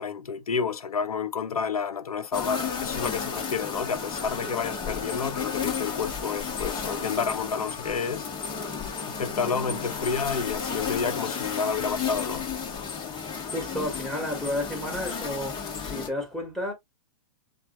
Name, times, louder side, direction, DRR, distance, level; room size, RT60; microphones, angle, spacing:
voice 1, 0.0-8.3 9.0-12.4, left 6 dB, 85° left, 0.7 m, -30 dB
sound 1, 2.3-16.1, left 6 dB, 25° left, 1.5 m, -33 dB
voice 2, 13.4-16.7, left 1 dB, ahead, 2.3 m, -32 dB
7.2 x 2.5 x 2.8 m
hypercardioid pair, 110°, 18 cm